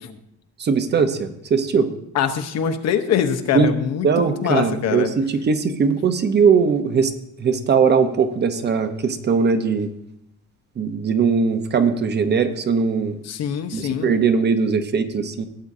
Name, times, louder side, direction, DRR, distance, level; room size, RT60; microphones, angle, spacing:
voice 1, 0.6-1.9 3.5-3.7 4.0-7.1 7.4-9.9 10.8-13.2 13.7-15.4, right 5 dB, 35° right, 9 dB, 0.8 m, -20 dB
voice 2, 2.1-5.1 13.2-14.1, left 8 dB, 60° left, 7 dB, 1.0 m, -23 dB
16.5 x 8.7 x 2.7 m, 0.78 s
cardioid pair, 135°, 29 cm